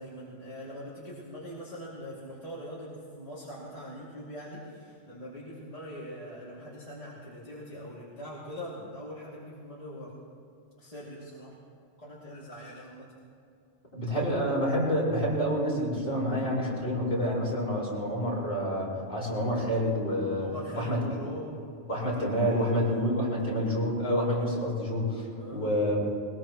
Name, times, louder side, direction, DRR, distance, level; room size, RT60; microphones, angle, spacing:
voice 1, 0.0-10.1 10.8-11.6 12.0-13.1 14.2-14.4 20.4-21.5 21.9-22.8 25.3-25.6, equal, 30° left, -8 dB, 2.7 m, -42 dB
voice 2, 13.9-20.5 20.7-21.0 21.9-26.0, equal, 50° left, -6 dB, 5.3 m, -28 dB
22.0 x 21.0 x 3.1 m, 2.5 s
omnidirectional pair, 1.3 m